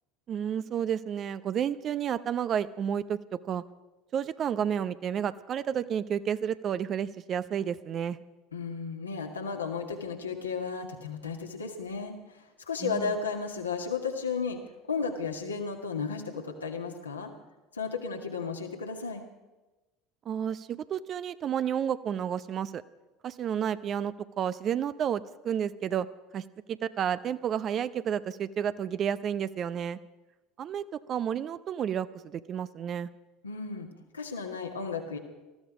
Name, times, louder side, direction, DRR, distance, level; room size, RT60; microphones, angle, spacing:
voice 1, 0.3-3.2 3.4-3.6 4.1-8.2 12.8-13.1 20.3-22.8 23.2-26.1 26.3-30.0 30.6-33.1, right 8 dB, 40° right, 15 dB, 0.7 m, -31 dB
voice 2, 8.5-14.6 14.9-17.3 17.7-19.2 33.4-33.9 34.1-35.2, left 5 dB, 80° left, 2 dB, 1.9 m, -34 dB
19.5 x 14.0 x 5.0 m, 1.1 s
figure-of-eight pair, 70°, 0 cm